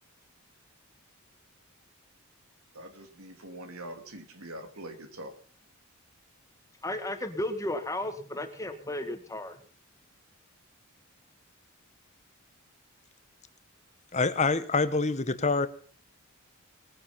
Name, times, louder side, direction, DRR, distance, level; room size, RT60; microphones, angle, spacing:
voice 1, 2.7-5.3, right 1 dB, 70° right, 6 dB, 2.6 m, -43 dB
voice 2, 6.8-9.6, left 1 dB, 15° left, 8 dB, 1.7 m, -34 dB
voice 3, 14.1-15.7, left 3 dB, 30° left, 13 dB, 1.1 m, -26 dB
20.5 x 9.8 x 5.8 m, 0.44 s
head